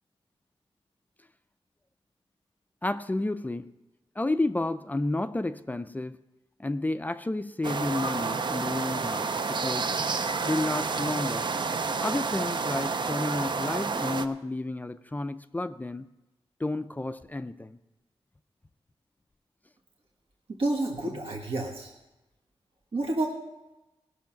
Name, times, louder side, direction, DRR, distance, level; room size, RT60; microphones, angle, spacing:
voice 1, 2.8-3.7 4.2-6.2 6.6-9.9 10.5-11.5 12.0-16.1 16.6-17.8, left 2 dB, 15° left, 11 dB, 0.4 m, -31 dB
jkl woods, 7.6-14.3, right 4 dB, 50° right, 0.6 m, -30 dB
voice 2, 20.5-21.9 22.9-23.3, right 2 dB, 65° right, 0 dB, 1.5 m, -29 dB
18.0 x 6.4 x 5.8 m, 1.0 s
wide cardioid pair, 110°, 10 cm